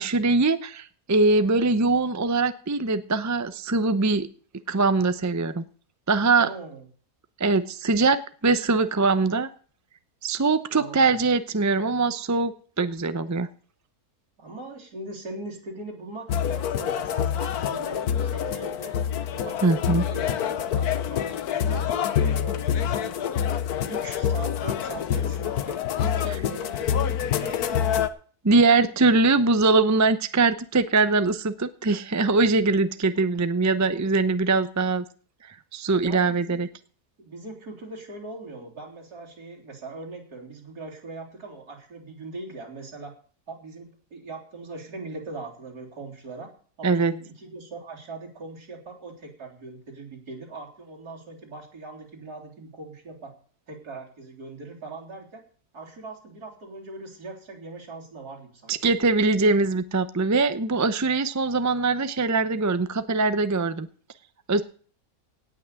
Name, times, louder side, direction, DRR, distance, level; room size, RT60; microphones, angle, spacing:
voice 1, 0.0-4.3 4.7-5.6 6.1-6.5 7.4-9.5 10.2-12.5 12.8-13.5 19.6-20.0 28.4-35.0 35.7-36.7 46.8-47.1 58.7-63.9 64.5-64.6, right 3 dB, 20° right, 11 dB, 0.4 m, -22 dB
voice 2, 6.4-6.9 10.7-11.1 14.4-19.0 19.3-23.2 23.9-28.0 36.0-36.6 37.2-43.1 43.5-46.5 46.8-53.3 53.7-55.4 55.7-58.8, right 2 dB, 75° right, -2 dB, 4.1 m, -40 dB
sound 1, 16.3-28.1, left 9 dB, 75° left, 1.4 m, -26 dB
17.5 x 6.1 x 8.2 m, 0.43 s
omnidirectional pair, 1.7 m